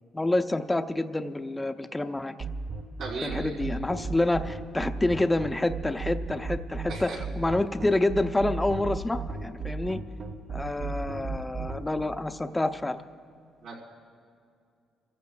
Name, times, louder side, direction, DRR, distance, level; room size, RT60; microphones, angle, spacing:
voice 1, 0.1-2.3 3.2-10.0 10.5-13.0, left 2 dB, 15° left, 8 dB, 0.5 m, -28 dB
sound 1, 2.4-11.8, right 4 dB, 55° right, 1.2 m, -34 dB
voice 2, 3.0-3.5 6.9-7.2 13.6-13.7, right 4 dB, 90° right, -5 dB, 3.8 m, -36 dB
29.0 x 15.0 x 2.3 m, 2.3 s
cardioid pair, 90°, 0 cm